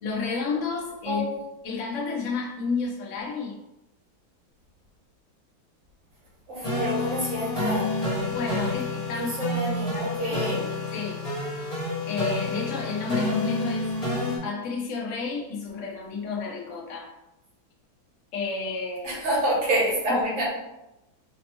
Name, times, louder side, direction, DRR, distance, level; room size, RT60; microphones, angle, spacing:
voice 1, 0.0-1.2 1.6-3.6 8.3-9.6 9.9-10.4 10.9-11.2 12.0-13.9 14.4-17.1 18.3-19.2 20.1-20.2, left 4 dB, 55° left, -2 dB, 0.9 m, -31 dB
voice 2, 6.5-7.8 9.1-10.6 19.0-20.5, right 1 dB, 75° right, -6 dB, 2.3 m, -27 dB
sound 1, 6.6-14.4, left 2 dB, 25° left, 0.9 m, -29 dB
4.4 x 2.8 x 2.9 m, 0.93 s
omnidirectional pair, 2.1 m